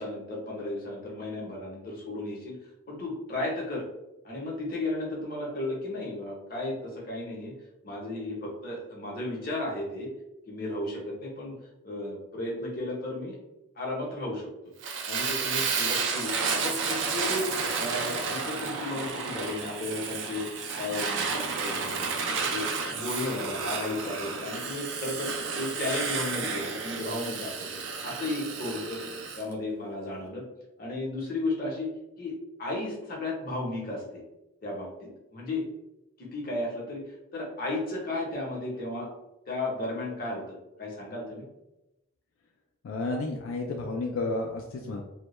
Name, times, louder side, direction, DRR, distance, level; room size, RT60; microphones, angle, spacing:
voice 1, 0.0-2.6 2.9-3.8 4.2-7.5 7.8-10.1 10.5-11.6 11.8-13.4 13.8-14.7 15.1-16.3 16.6-17.5 17.8-20.5 20.8-22.1 22.5-29.0 29.4-30.4 30.8-31.9 32.2-32.3 32.6-34.2 34.6-35.6 36.2-37.0 37.3-39.1 39.5-41.4, left 2 dB, 45° left, -3 dB, 0.7 m, -34 dB
Fire, 14.8-29.4, right 5 dB, 65° right, 0.4 m, -31 dB
voice 2, 42.8-45.0, left 2 dB, 85° left, 1 dB, 0.3 m, -31 dB
2.1 x 2.0 x 2.9 m, 0.95 s
head